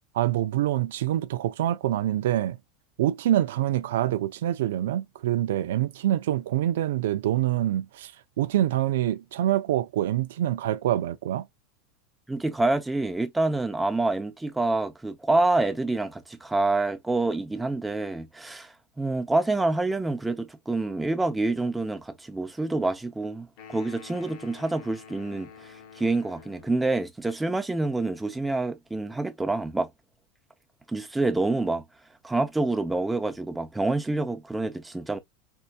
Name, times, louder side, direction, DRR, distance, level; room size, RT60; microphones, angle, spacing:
voice 1, 0.1-2.6 3.0-8.1 8.4-11.5, right 13 dB, 90° right, 0.4 m, -25 dB
voice 2, 12.3-29.9 30.9-31.8 32.2-35.2, right 2 dB, 5° right, 0.6 m, -27 dB
sound 1, 23.6-26.9, left 7 dB, 60° left, 1.0 m, -48 dB
4.4 x 2.8 x 2.3 m
supercardioid pair, 145°, 0 cm